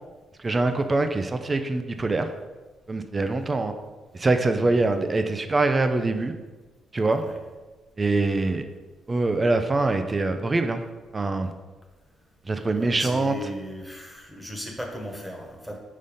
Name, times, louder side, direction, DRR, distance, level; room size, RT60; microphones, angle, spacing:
voice 1, 0.4-2.3 2.9-3.7 4.1-6.3 6.9-7.2 8.0-8.7 9.1-10.8 11.1-11.5 12.5-13.3, right 3 dB, 25° right, 8 dB, 0.5 m, -24 dB
voice 2, 4.5-4.9 7.2-7.4 12.8-15.8, left 1 dB, 5° right, 1 dB, 1.3 m, -37 dB
5.1 x 4.0 x 5.4 m, 1.3 s
cardioid pair, 90°, 0 cm